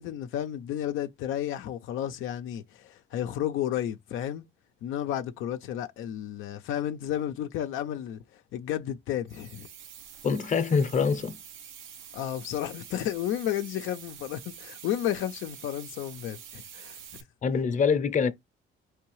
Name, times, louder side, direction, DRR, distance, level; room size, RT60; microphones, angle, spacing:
voice 1, 0.0-4.4 4.8-9.7 12.1-17.0, left 11 dB, 80° left, 0.4 m, -32 dB
sound 1, 9.3-17.2, right 8 dB, 85° right, 0.7 m, -47 dB
voice 2, 10.2-11.4 17.4-18.3, left 5 dB, 40° left, 0.6 m, -25 dB
4.5 x 3.3 x 3.1 m
cardioid pair, 90°, 20 cm